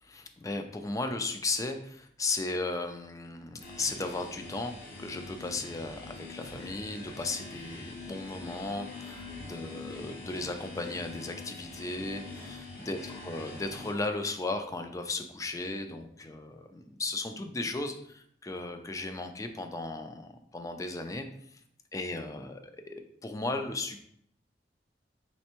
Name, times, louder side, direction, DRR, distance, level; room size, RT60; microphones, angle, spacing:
voice 1, 0.0-21.3 21.5-21.6 21.9-22.6 22.9-24.0, left 2 dB, 20° left, 7 dB, 0.3 m, -36 dB
sound 1, 3.6-13.9, left 3 dB, 60° left, 0.9 m, -44 dB
4.3 x 3.3 x 3.0 m, 0.69 s
head